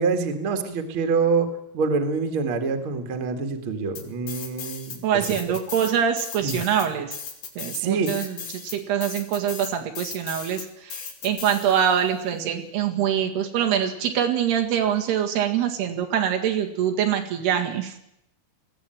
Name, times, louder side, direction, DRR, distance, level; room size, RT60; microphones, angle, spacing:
voice 1, 0.0-5.0 5.4-5.5 6.4-6.6 7.7-8.4, right 4 dB, 40° right, 6 dB, 2.2 m, -26 dB
sound 1, 4.0-5.0 5.2-12.1, left 7 dB, 65° left, 4.2 m, -36 dB
voice 2, 5.0-7.1 7.6-18.0, right 9 dB, 85° right, 3 dB, 4.0 m, -24 dB
20.5 x 15.0 x 9.1 m, 0.79 s
omnidirectional pair, 4.5 m